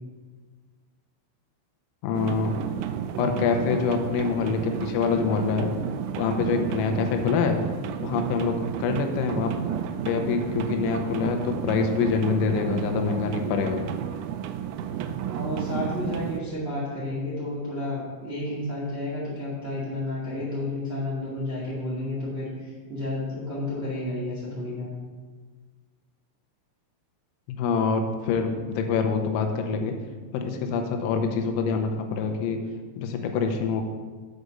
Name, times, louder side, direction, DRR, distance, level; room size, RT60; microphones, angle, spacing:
voice 1, 2.0-2.6 3.2-5.7 6.2-7.6 8.0-9.5 10.1-13.9 27.5-29.9 30.3-32.6 33.0-33.8, left 5 dB, 85° left, 4 dB, 3.5 m, -25 dB
sound 1, 2.1-16.4, right 9 dB, 85° right, 3.1 m, -32 dB
voice 2, 15.2-25.0, left 1 dB, 40° right, -7 dB, 0.8 m, -31 dB
8.4 x 5.1 x 6.6 m, 1.4 s
omnidirectional pair, 5.9 m